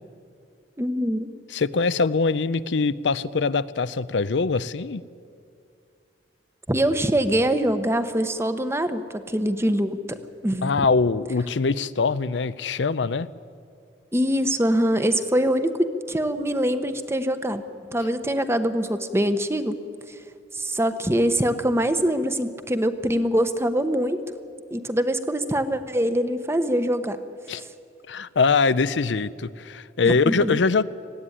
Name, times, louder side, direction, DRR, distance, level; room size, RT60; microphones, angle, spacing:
voice 1, 0.8-1.3 6.7-10.2 10.4-10.7 14.1-17.6 17.9-19.8 20.5-24.2 24.7-27.2 30.0-30.6, equal, 15° right, 10 dB, 1.0 m, -23 dB
voice 2, 1.5-5.0 10.6-13.3 27.5-27.6 28.1-30.8, left 4 dB, 90° left, 16 dB, 0.6 m, -23 dB
18.5 x 15.5 x 10.0 m, 2.4 s
head